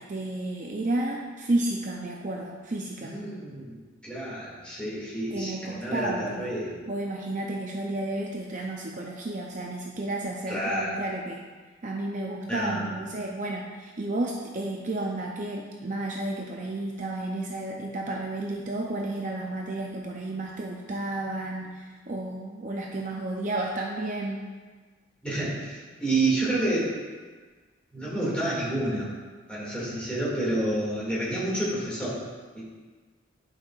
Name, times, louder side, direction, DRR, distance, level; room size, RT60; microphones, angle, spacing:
voice 1, 0.0-3.1 5.3-6.5 6.9-11.4 11.8-24.4, right 2 dB, 40° right, -1 dB, 0.5 m, -32 dB
voice 2, 3.0-3.8 4.0-6.8 10.5-10.9 12.5-13.0 25.2-26.9 27.9-29.1 29.5-32.2 32.5-32.6, right 1 dB, 5° left, -8 dB, 2.2 m, -29 dB
10.5 x 5.5 x 2.4 m, 1.4 s
head